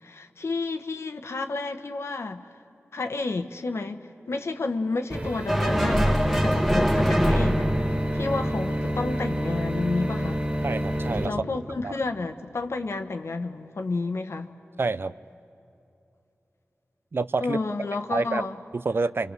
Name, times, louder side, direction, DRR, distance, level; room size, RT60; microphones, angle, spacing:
voice 1, 0.0-2.5 2.9-10.4 11.2-14.5 17.4-18.6, left 3 dB, 80° left, 1.2 m, -31 dB
sound 1, 5.1-11.3, equal, 30° right, 2.5 m, -28 dB
sound 2, 5.5-9.0, equal, 5° right, 1.5 m, -24 dB
voice 2, 10.6-11.3 11.8-11.9 14.8-15.1 17.1-17.6 18.1-18.4 18.7-19.3, right 3 dB, 55° right, 0.6 m, -27 dB
29.0 x 26.0 x 6.8 m
wide cardioid pair, 65°, 5 cm